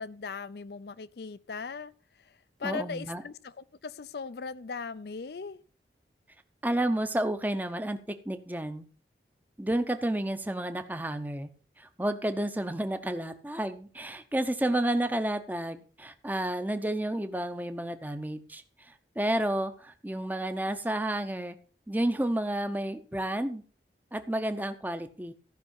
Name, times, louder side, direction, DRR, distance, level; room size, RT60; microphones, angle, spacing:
voice 1, 0.0-1.9 2.2-2.3 2.6-5.6, left 5 dB, 65° left, 0.5 m, -38 dB
voice 2, 2.6-3.2 6.6-8.0 8.3-8.9 9.6-11.5 11.8-18.6 18.9-21.6 21.9-23.6 24.1-25.3, right 1 dB, 10° right, 0.7 m, -31 dB
14.0 x 5.5 x 5.5 m
head